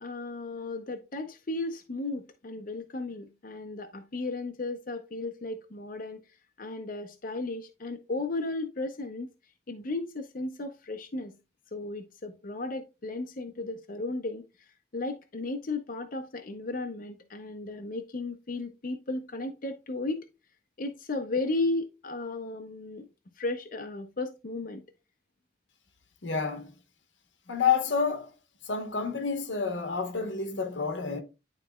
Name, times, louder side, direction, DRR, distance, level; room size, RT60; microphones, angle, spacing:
voice 1, 0.0-6.2 6.6-9.3 9.7-11.3 11.7-14.4 14.9-20.3 20.8-23.1 23.4-24.8, left 2 dB, 45° left, 0.6 m, -34 dB
voice 2, 26.2-26.7 27.5-28.3 28.7-31.2, left 6 dB, 85° left, 1.1 m, -29 dB
11.0 x 4.0 x 2.2 m
head